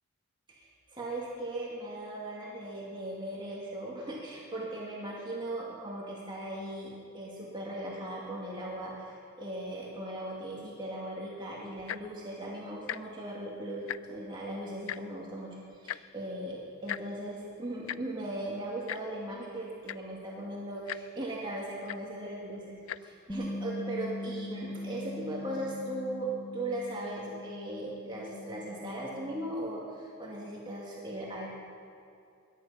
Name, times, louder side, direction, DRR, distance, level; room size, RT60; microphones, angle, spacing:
voice 1, 0.5-31.5, right 1 dB, 20° right, -4 dB, 2.1 m, -38 dB
Tick-tock, 11.8-12.1 12.8-13.0 13.3-13.4 13.7-14.3 14.9-15.0 15.9-16.0 16.9-17.0 17.9-18.0 18.9-19.0 19.6-19.7 19.8-20.2 20.9-21.0 21.9-22.0 22.8-23.0 23.7-23.8, left 11 dB, 65° left, 0.3 m, -37 dB
Bass guitar, 23.3-29.5, left 1 dB, 20° left, 0.7 m, -41 dB
21.5 x 11.0 x 5.7 m, 2.5 s
head